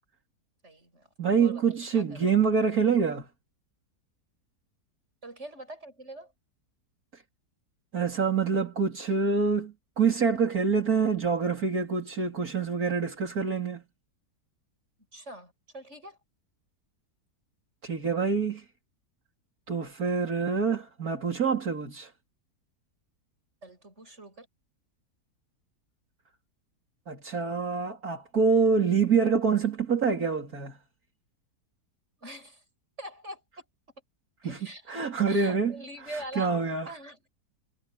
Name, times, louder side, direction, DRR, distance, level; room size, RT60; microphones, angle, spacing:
voice 1, 0.6-1.1 1.4-2.3 5.2-6.3 15.1-16.2 23.6-24.5 32.2-32.6 33.0-33.4 34.4-35.0 35.3-36.5 36.8-37.2, right 1 dB, 45° right, 8.2 m, -43 dB
voice 2, 1.2-3.3 7.1-7.2 7.9-13.8 17.8-18.6 19.7-22.1 27.1-30.8 34.4-35.7 36.1-36.9, right 5 dB, 65° right, 3.8 m, -26 dB
omnidirectional pair, 1.7 m